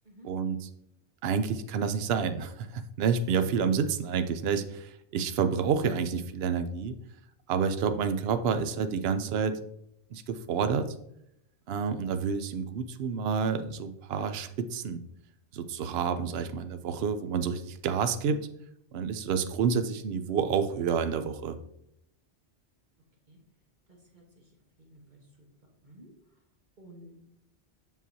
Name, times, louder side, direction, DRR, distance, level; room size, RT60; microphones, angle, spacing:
voice 1, 0.2-0.7 1.2-7.0 7.5-9.6 10.1-10.9 11.7-15.0 15.5-18.4 18.9-21.6, right 6 dB, 65° right, 10 dB, 0.8 m, -29 dB
voice 2, 23.9-24.5 24.8-25.5 25.8-26.1 26.8-27.3, equal, 40° right, 0 dB, 1.3 m, -53 dB
7.2 x 5.8 x 2.8 m, 0.77 s
omnidirectional pair, 1.2 m